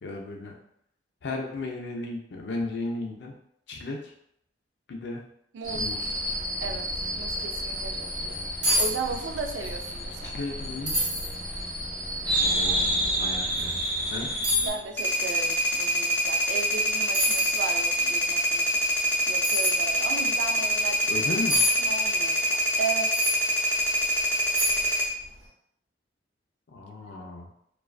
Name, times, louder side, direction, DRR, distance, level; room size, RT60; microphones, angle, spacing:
voice 1, 0.0-0.5 1.2-3.3 3.7-4.1 4.9-5.2 5.7-6.1 10.2-11.0 12.4-14.3 21.1-21.6 26.7-27.5, left 2 dB, 70° left, 1 dB, 0.4 m, -35 dB
voice 2, 5.5-5.8 6.6-6.9 7.2-8.4 8.7-10.4 14.6-18.6 19.3-21.3 21.8-23.1 27.1-27.3, right 4 dB, 80° right, 5 dB, 0.3 m, -36 dB
sound 1, 5.6-14.7, equal, 20° right, 1.0 m, -30 dB
sound 2, 8.3-8.4 8.6-8.9 9.2-9.8 10.1-10.2 10.9-11.3 11.9-12.0 13.5-13.7 14.4-14.7 16.6-16.7 17.1-17.6 19.4-19.7 21.5-21.7 23.1-23.4 24.0-24.1 24.5-25.0 25.2-25.4, left 1 dB, 40° right, 1.0 m, -26 dB
sound 3, 15.0-25.1, equal, 10° left, 0.3 m, -25 dB
2.3 x 2.3 x 2.3 m, 0.73 s
head